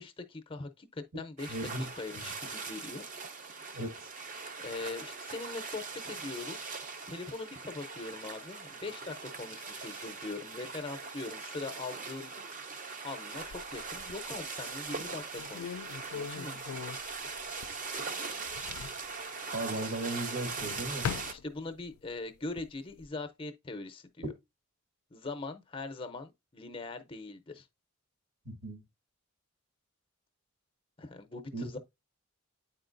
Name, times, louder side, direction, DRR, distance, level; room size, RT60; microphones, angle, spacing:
voice 1, 0.0-1.6 2.0-3.0 4.6-6.6 7.1-12.3 13.0-16.8 21.3-24.3 25.1-27.7 31.0-31.8, left 3 dB, 25° left, 0.6 m, -41 dB
sound 1, 1.4-21.3, right 4 dB, 35° right, 0.6 m, -41 dB
voice 2, 1.5-1.9 2.2-2.3 3.7-4.1 19.5-21.1 24.2-24.3 28.5-28.8 31.5-31.8, right 1 dB, 70° right, 1.7 m, -36 dB
sound 2, 13.4-14.4 14.9-15.0 15.3-18.0 18.3-19.1 20.2-22.0 22.4-23.1, left 8 dB, 75° left, 0.3 m, -41 dB
8.6 x 4.4 x 2.5 m
head